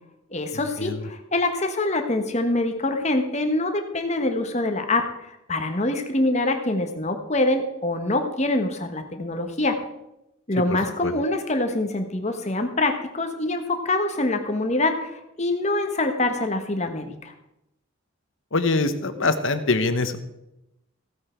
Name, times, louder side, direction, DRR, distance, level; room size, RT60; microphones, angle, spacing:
voice 1, 0.3-9.8 10.5-17.3, left 2 dB, 35° left, 6 dB, 1.3 m, -25 dB
voice 2, 18.5-20.2, left 3 dB, 70° left, 10 dB, 1.1 m, -23 dB
15.5 x 8.6 x 4.5 m, 0.89 s
head